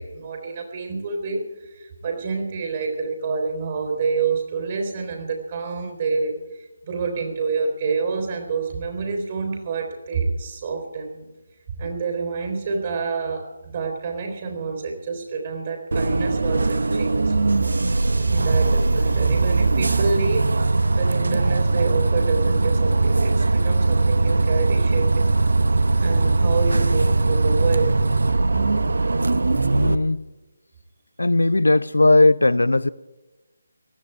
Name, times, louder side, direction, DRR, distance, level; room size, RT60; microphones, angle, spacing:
voice 1, 0.0-6.4 6.8-11.3 11.8-17.3 18.3-20.5 20.9-25.4 26.0-28.0, right 4 dB, 35° right, 3.9 m, -28 dB
Bus, 15.9-29.9, right 3 dB, 65° right, 0.9 m, -20 dB
voice 2, 29.7-30.2 31.2-32.9, left 2 dB, 75° left, 0.6 m, -17 dB
19.5 x 14.0 x 4.6 m
figure-of-eight pair, 150°, 0 cm